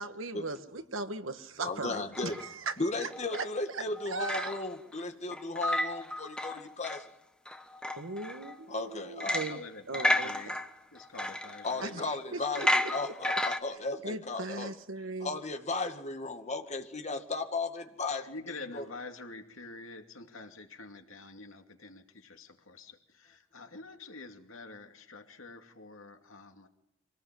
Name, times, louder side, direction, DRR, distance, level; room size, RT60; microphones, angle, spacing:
voice 1, 0.0-2.7 3.0-3.4 3.7-4.5 8.0-9.6 9.9-10.6 11.8-12.0 12.3-13.1 14.0-15.4, right 3 dB, 65° right, 9 dB, 1.6 m, -38 dB
voice 2, 1.6-2.4 2.8-7.0 8.7-9.5 11.6-14.7 15.2-18.8, left 3 dB, 35° left, 6 dB, 2.1 m, -35 dB
sound 1, 2.1-2.5 3.1-3.5 3.9-4.9 5.3-7.1 7.5-8.5 9.2-9.7 9.9-12.1 12.6-13.6, left 1 dB, 5° left, 1.1 m, -32 dB
voice 3, 9.5-10.5 10.9-12.1 18.1-26.7, left 3 dB, 70° left, 5 dB, 2.6 m, -47 dB
25.0 x 18.5 x 7.7 m, 0.82 s
head